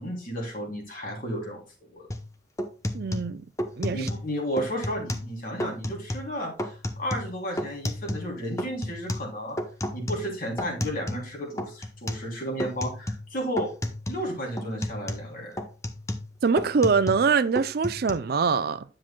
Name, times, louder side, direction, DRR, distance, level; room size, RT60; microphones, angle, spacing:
voice 1, 0.0-1.6 1.9-2.1 3.9-9.6 9.9-13.7 14.1-15.6, equal, 50° left, 3.1 m, -33 dB
sound 1, 2.1-2.3 2.6-4.3 4.6-5.3 5.6-6.3 6.6-8.3 8.6-11.3 11.6-12.3 12.6-13.3 13.6-14.3 14.6-17.3 17.6-18.1, left 1 dB, 15° left, 0.8 m, -32 dB
voice 2, 2.9-3.4 3.8-4.1 16.4-18.8, right 5 dB, 55° right, 0.4 m, -23 dB
9.8 x 7.5 x 2.2 m
head